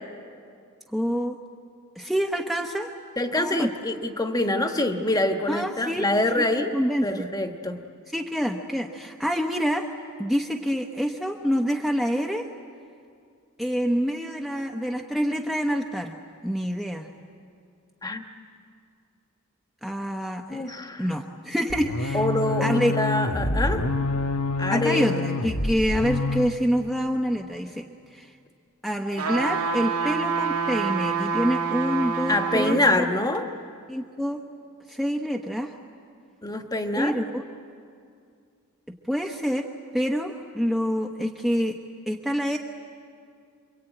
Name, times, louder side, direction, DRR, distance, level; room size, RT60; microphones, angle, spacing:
voice 1, 0.9-1.4 2.0-2.9 3.3-3.7 5.5-6.1 6.4-7.3 8.1-9.9 10.2-12.5 13.6-16.1 16.4-17.1 19.8-20.7 21.0-22.3 22.6-23.0 24.7-27.8 28.1-28.3 28.8-33.1 33.9-34.4 34.9-35.7 37.0-37.4 39.1-39.7 39.9-41.8 42.1-42.6, equal, ahead, 2 dB, 1.0 m, -26 dB
voice 2, 3.2-6.7 7.0-7.8 18.0-18.2 20.5-21.1 22.1-23.9 24.6-25.1 32.3-33.5 36.4-37.2, left 1 dB, 15° left, 6 dB, 1.4 m, -25 dB
sound 1, 21.7-26.6, left 2 dB, 90° left, 1.5 m, -27 dB
sound 2, 29.2-32.8 33.3-33.4, right 5 dB, 85° right, 2.6 m, -27 dB
27.5 x 24.0 x 9.1 m, 2.3 s
head